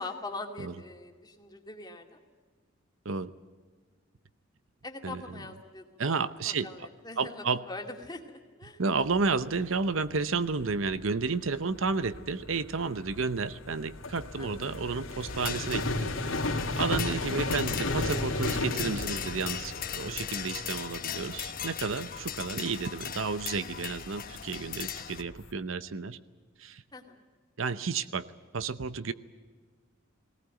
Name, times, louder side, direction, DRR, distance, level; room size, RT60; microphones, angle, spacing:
voice 1, 0.0-2.2 4.8-6.1 6.4-8.8 14.4-14.5 26.9-27.2, left 3 dB, 20° left, 3 dB, 2.3 m, -42 dB
voice 2, 6.0-6.7 7.2-7.6 8.8-16.1 16.5-26.2 26.6-26.8 27.6-28.3 28.5-29.1, right 4 dB, 75° right, 14 dB, 0.8 m, -31 dB
sound 1, 8.9-25.5, left 2 dB, 90° left, 2.9 m, -36 dB
sound 2, 15.3-25.2, left 9 dB, 45° left, 1.1 m, -39 dB
19.0 x 19.0 x 9.0 m, 1.5 s
head